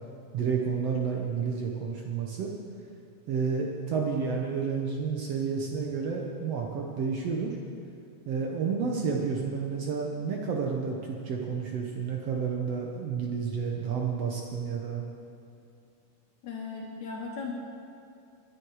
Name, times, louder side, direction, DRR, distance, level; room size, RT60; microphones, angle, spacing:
voice 1, 0.3-2.5 3.3-7.6 8.3-15.0, right 5 dB, 65° right, 0 dB, 1.9 m, -30 dB
voice 2, 16.4-17.5, left 5 dB, 75° left, -2 dB, 2.6 m, -37 dB
22.0 x 7.9 x 4.8 m, 2.6 s
omnidirectional pair, 3.4 m